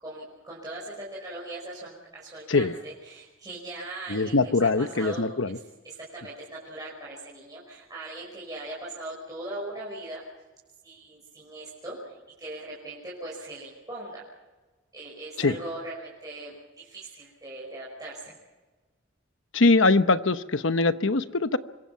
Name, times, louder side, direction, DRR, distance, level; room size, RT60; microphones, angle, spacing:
voice 1, 0.0-5.6 5.8-10.2 10.8-14.2 14.9-18.3, right 2 dB, 20° right, -6 dB, 5.6 m, -40 dB
voice 2, 4.1-5.6 15.4-15.6 19.5-21.6, left 3 dB, 70° left, 11 dB, 1.0 m, -22 dB
25.5 x 22.5 x 5.7 m, 1.2 s
head